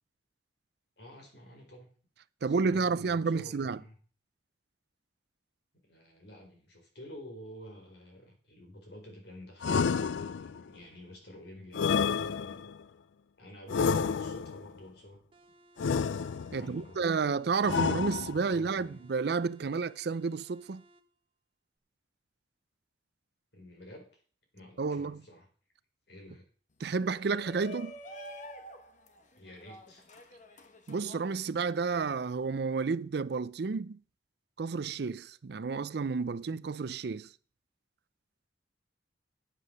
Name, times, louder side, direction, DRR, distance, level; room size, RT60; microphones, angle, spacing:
voice 1, 1.0-1.9 2.4-4.0 5.8-12.7 13.4-15.2 16.5-17.1 18.5-19.0 23.5-24.2 24.5-25.5 26.1-26.4 29.4-30.0, left 1 dB, 60° left, 4.2 m, -50 dB
voice 2, 2.4-3.8 16.5-20.8 24.8-25.2 26.8-27.9 30.9-34.0 34.6-37.3, right 4 dB, 60° right, 0.5 m, -31 dB
sound 1, 9.6-10.7 11.7-12.8 13.7-14.7 15.8-16.7 17.6-18.6, left 6 dB, 85° left, 0.4 m, -30 dB
sound 2, 15.3-21.1, right 1 dB, 30° right, 1.0 m, -61 dB
Shout, 27.0-32.1, left 1 dB, 40° left, 1.1 m, -48 dB
10.0 x 7.5 x 6.6 m
head